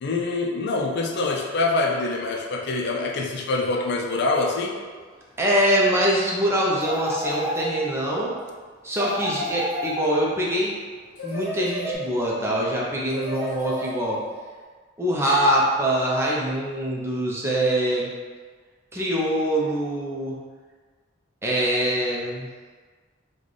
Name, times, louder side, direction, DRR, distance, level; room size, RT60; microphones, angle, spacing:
voice 1, 0.0-4.8, left 3 dB, 60° left, 0 dB, 0.4 m, -25 dB
Bird, 2.1-12.0, right 1 dB, 25° left, 1.1 m, -37 dB
voice 2, 5.4-8.3 8.8-10.7 11.2-14.3 15.0-18.1 18.9-20.4 21.4-22.5, right 1 dB, 15° right, -4 dB, 0.6 m, -23 dB
sound 1, 6.8-8.1 8.9-10.5 11.2-12.3 13.1-14.3, left 1 dB, 40° left, 1.5 m, -31 dB
3.2 x 2.3 x 4.0 m, 1.5 s
head